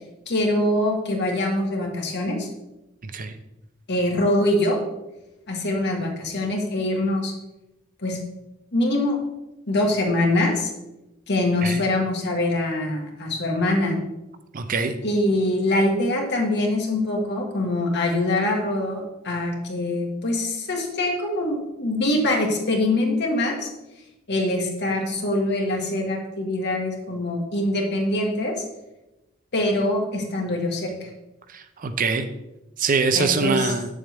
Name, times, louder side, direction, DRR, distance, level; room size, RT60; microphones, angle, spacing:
voice 1, 0.3-2.5 3.9-4.8 5.5-7.3 8.0-8.2 8.7-9.2 9.7-10.7 11.3-14.0 15.0-23.7 24.3-28.5 29.5-31.1 33.1-33.7, left 1 dB, 55° left, 1 dB, 1.6 m, -24 dB
voice 2, 3.0-3.3 11.6-11.8 14.5-14.9 31.5-32.3 32.8-33.9, right 4 dB, 40° right, 9 dB, 0.5 m, -23 dB
7.6 x 7.2 x 3.5 m, 0.96 s
head